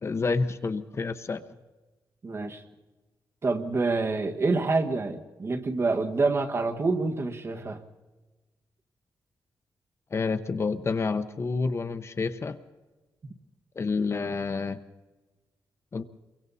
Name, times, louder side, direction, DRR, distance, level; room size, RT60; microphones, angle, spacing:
voice 1, 0.0-1.4 10.1-12.6 13.8-14.8 15.9-16.0, left 4 dB, 35° left, 10 dB, 0.9 m, -29 dB
voice 2, 2.2-2.6 3.4-7.8, right 3 dB, 35° right, 5 dB, 1.6 m, -27 dB
29.5 x 23.5 x 4.2 m, 1.2 s
wide cardioid pair, 155°, 8 cm